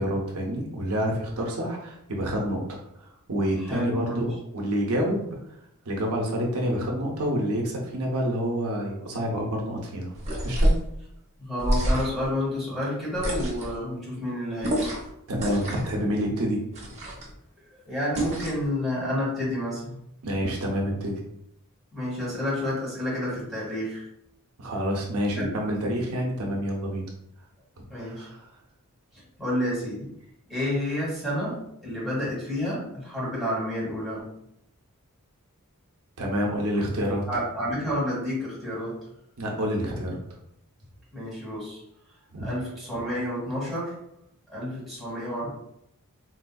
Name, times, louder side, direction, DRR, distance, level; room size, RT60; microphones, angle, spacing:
voice 1, 0.0-5.3 5.9-10.1 10.4-10.7 15.3-16.6 20.2-21.2 24.6-27.1 27.8-28.4 36.2-37.2 39.4-40.2 42.3-42.5, equal, 80° right, -1 dB, 0.7 m, -28 dB
voice 2, 3.6-4.3 11.4-14.9 17.7-20.0 21.9-24.1 25.3-25.5 27.9-28.3 29.4-30.1 30.5-34.3 37.3-39.0 41.1-41.8 42.4-44.0 44.5-45.5, left 1 dB, ahead, -8 dB, 1.4 m, -30 dB
sound 1, 10.1-10.9 11.6-12.3 13.1-13.8 14.6-15.1 15.4-15.9 16.7-17.3 18.1-18.7, right 1 dB, 30° right, 0.9 m, -27 dB
4.0 x 2.5 x 2.2 m, 0.75 s
head